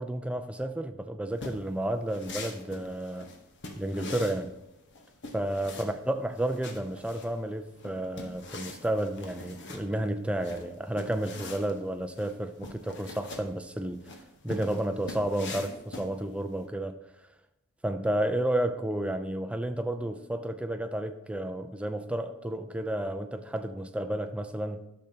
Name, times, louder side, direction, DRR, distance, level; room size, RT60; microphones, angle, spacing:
voice 1, 0.0-3.3 3.8-4.5 5.3-14.0 14.4-16.9 17.8-24.8, right 1 dB, 5° right, 0.4 m, -31 dB
sound 1, 1.3-16.6, left 2 dB, 55° left, 1.0 m, -44 dB
12.0 x 6.7 x 2.8 m
head